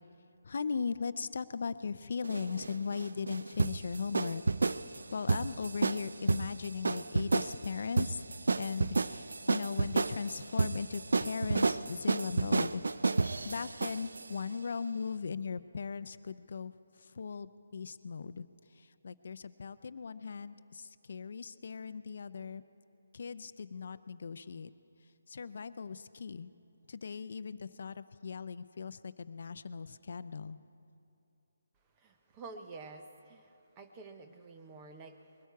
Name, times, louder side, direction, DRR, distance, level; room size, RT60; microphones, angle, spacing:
voice 1, 0.4-4.4 4.9-8.2 8.6-16.7 17.0-18.5 18.8-22.6 23.1-24.7 25.3-26.5 26.9-30.6, left 5 dB, 50° left, 13 dB, 0.5 m, -38 dB
sound 1, 2.2-14.3, right 3 dB, 85° right, 0.4 m, -31 dB
voice 2, 32.0-35.2, right 3 dB, 15° right, 5 dB, 0.6 m, -49 dB
21.5 x 13.0 x 4.7 m, 2.7 s
hypercardioid pair, 175°, 0 cm